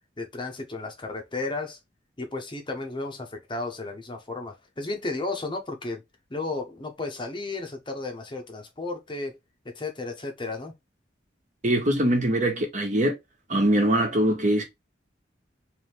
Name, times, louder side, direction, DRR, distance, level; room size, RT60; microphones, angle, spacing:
voice 1, 0.2-1.8 2.2-6.0 6.3-9.4 9.6-10.7, left 3 dB, 25° left, 0.9 m, -33 dB
voice 2, 11.6-13.2 13.5-14.6, right 1 dB, 40° right, 1.4 m, -22 dB
3.6 x 3.4 x 3.1 m
head